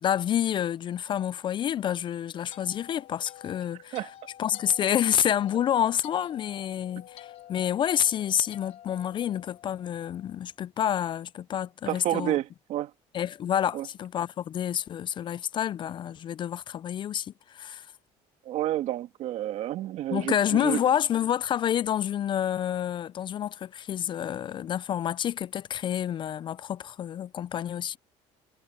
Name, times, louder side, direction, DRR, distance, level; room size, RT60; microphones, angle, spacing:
voice 1, 0.0-4.0 4.4-12.4 13.1-17.9 20.1-28.0, left 10 dB, 40° left, 0.4 m, -28 dB
sound 1, 2.0-10.3, left 12 dB, 60° left, 3.6 m, -50 dB
voice 2, 11.9-12.9 13.7-13.9 18.5-20.8, right 13 dB, 65° right, 1.9 m, -30 dB
cardioid pair, 120°, 13 cm